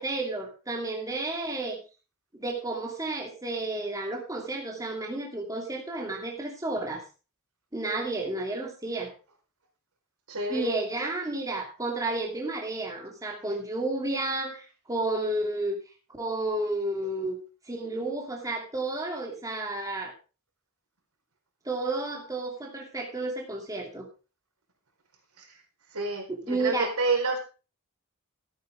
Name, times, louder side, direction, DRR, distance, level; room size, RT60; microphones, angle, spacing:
voice 1, 0.0-1.8 2.3-7.0 7.7-9.1 10.5-15.8 16.2-17.4 17.7-20.1 21.6-24.1 26.3-26.9, right 2 dB, 15° right, 0 dB, 2.7 m, -31 dB
voice 2, 10.3-10.7 25.4-25.5 25.9-27.4, right 3 dB, 80° right, 3 dB, 4.3 m, -29 dB
14.0 x 9.5 x 3.5 m, 0.33 s
head